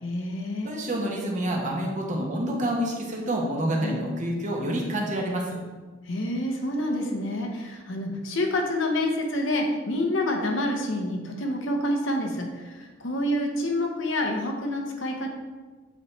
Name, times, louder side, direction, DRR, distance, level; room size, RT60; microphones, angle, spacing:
voice 1, 0.0-0.7 3.8-4.0 6.1-15.3, left 1 dB, 80° left, 2 dB, 1.0 m, -28 dB
voice 2, 0.6-5.6, right 1 dB, 40° right, -1 dB, 1.1 m, -28 dB
8.0 x 4.3 x 3.3 m, 1.3 s
head